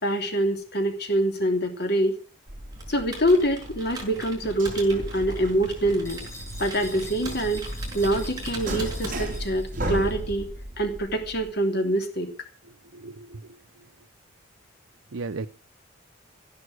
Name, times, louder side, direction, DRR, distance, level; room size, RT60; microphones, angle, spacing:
voice 1, 0.0-2.2 2.9-6.2 6.6-7.6 7.9-10.5 10.8-12.3, right 1 dB, 50° left, 5 dB, 3.1 m, -25 dB
sound 1, 2.5-11.5, right 1 dB, 40° right, 3.5 m, -35 dB
Computer keyboard, 2.7-9.6, right 2 dB, 20° right, 6.6 m, -41 dB
sound 2, 6.0-10.2, left 1 dB, 15° left, 7.9 m, -45 dB
voice 2, 12.9-13.4 15.1-15.5, right 3 dB, 75° right, 11 dB, 0.7 m, -34 dB
15.5 x 11.5 x 6.4 m, 0.37 s
head